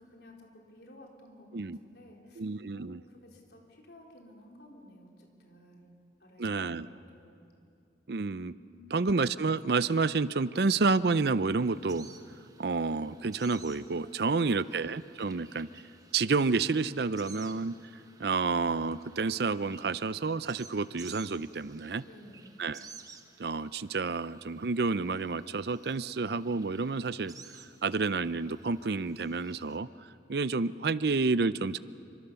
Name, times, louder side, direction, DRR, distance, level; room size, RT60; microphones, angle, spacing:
voice 1, 0.0-2.4 2.7-5.9 6.2-7.5 8.6-9.1 22.0-22.5, left 1 dB, 65° left, 0 dB, 4.3 m, -54 dB
voice 2, 2.4-3.0 6.4-6.9 8.1-8.6 8.9-12.1 12.6-15.7 16.1-17.8 18.2-22.0 22.6-22.8 23.4-29.9 30.3-31.8, right 4 dB, 60° right, 16 dB, 0.6 m, -29 dB
sound 1, 11.6-29.8, right 5 dB, 20° right, 1.4 m, -55 dB
28.5 x 25.5 x 7.0 m, 2.5 s
head